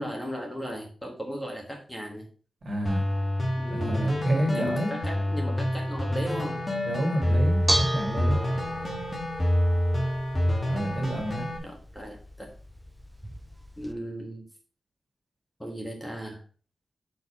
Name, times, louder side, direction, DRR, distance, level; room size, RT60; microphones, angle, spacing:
voice 1, 0.0-2.3 3.6-4.2 4.5-6.6 8.2-8.5 11.6-12.5 13.8-14.5 15.6-16.4, equal, 10° left, 1 dB, 1.4 m, -36 dB
voice 2, 2.6-3.0 3.7-4.9 6.9-8.4 10.7-11.5, right 1 dB, 40° right, 1 dB, 2.3 m, -29 dB
sound 1, 2.8-11.6, left 1 dB, 25° left, 1.7 m, -27 dB
Bell / Dishes pots and pans, 7.3-13.9, right 1 dB, 5° right, 0.5 m, -35 dB
6.7 x 4.6 x 4.7 m, 0.39 s
wide cardioid pair, 165°, 0 cm